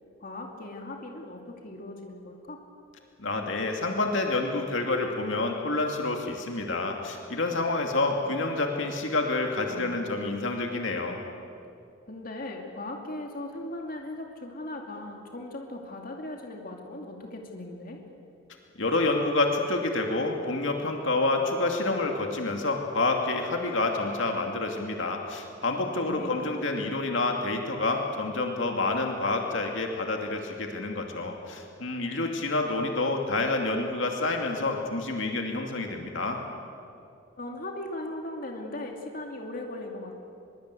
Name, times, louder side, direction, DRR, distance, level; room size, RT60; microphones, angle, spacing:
voice 1, 0.2-2.6 9.7-10.1 12.1-18.0 26.0-26.4 37.4-40.2, left 1 dB, 45° left, 2 dB, 2.5 m, -38 dB
voice 2, 3.2-11.2 18.8-36.4, left 2 dB, 65° left, 2 dB, 2.5 m, -28 dB
23.5 x 23.0 x 8.4 m, 2.6 s
head